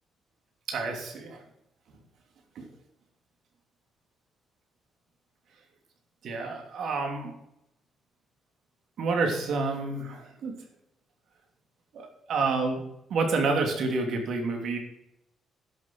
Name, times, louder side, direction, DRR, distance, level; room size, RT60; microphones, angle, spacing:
voice 1, 0.7-1.4 2.5-2.7 6.2-7.3 9.0-10.5 11.9-12.8 13.1-14.8, right 3 dB, 70° right, 3 dB, 2.9 m, -29 dB
11.0 x 6.7 x 6.3 m, 0.82 s
cardioid pair, 90°, 0 cm